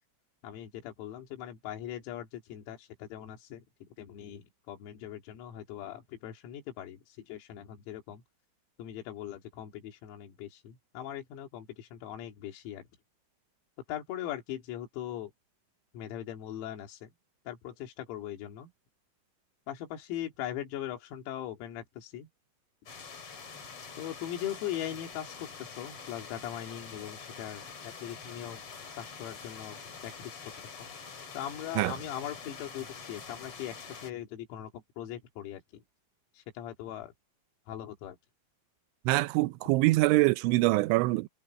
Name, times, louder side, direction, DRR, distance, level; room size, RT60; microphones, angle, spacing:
voice 1, 0.4-3.6 4.0-8.2 8.8-12.8 13.9-15.3 15.9-17.1 17.5-18.7 19.7-22.3 24.0-28.6 28.9-30.5 30.8-30.9 31.3-35.8 36.4-37.1 37.7-38.2, left 11 dB, 85° left, 5.4 m, -40 dB
sound 1, 22.9-34.1, left 5 dB, 35° left, 2.7 m, -46 dB
voice 2, 39.1-41.3, right 20 dB, 80° right, 2.8 m, -24 dB
omnidirectional pair, 6.0 m